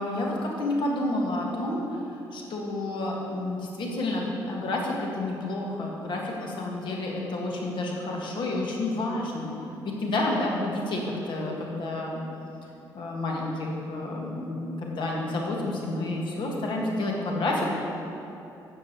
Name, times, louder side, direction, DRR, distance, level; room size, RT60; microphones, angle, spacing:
voice 1, 0.0-9.5 9.8-12.2 12.9-17.7, left 2 dB, 60° left, -1 dB, 1.7 m, -30 dB
12.0 x 7.3 x 3.0 m, 2.8 s
hypercardioid pair, 55°, 9 cm